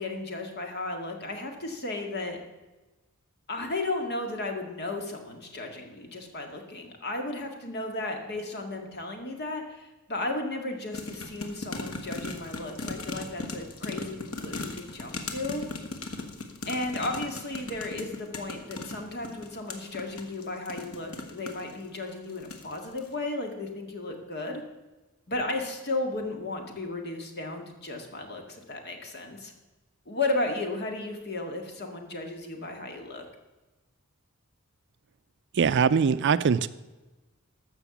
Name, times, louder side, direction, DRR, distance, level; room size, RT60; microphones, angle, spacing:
voice 1, 0.0-2.4 3.5-15.6 16.7-24.6 25.3-29.5 30.1-33.2, left 2 dB, 50° left, 3 dB, 2.0 m, -34 dB
sound 1, 10.9-21.7 22.3-22.7 23.0-23.1, left 2 dB, 85° left, 1.5 m, -37 dB
voice 2, 35.5-36.7, right 6 dB, 55° right, 14 dB, 0.4 m, -22 dB
14.0 x 6.1 x 7.1 m, 1.1 s
head